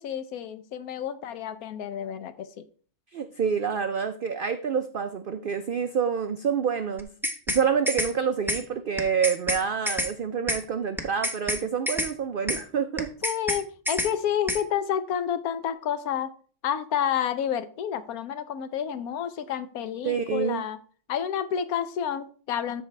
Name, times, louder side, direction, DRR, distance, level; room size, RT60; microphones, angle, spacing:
voice 1, 0.0-2.6 13.2-16.3 16.6-20.8 21.1-22.8, left 9 dB, 75° left, 12 dB, 1.2 m, -29 dB
voice 2, 3.1-7.1 7.5-13.1 20.0-20.6, right 7 dB, 75° right, 9 dB, 0.4 m, -27 dB
sound 1, 7.0-7.6 7.9-8.1 8.5-8.6 9.0-9.6 9.9-10.1 10.5-10.6 11.0-11.6 11.9-12.1 12.5-12.6 13.0-13.6 13.9-14.1 14.5-14.6, left 1 dB, ahead, 0.8 m, -28 dB
13.0 x 4.7 x 3.2 m, 0.43 s
omnidirectional pair, 1.6 m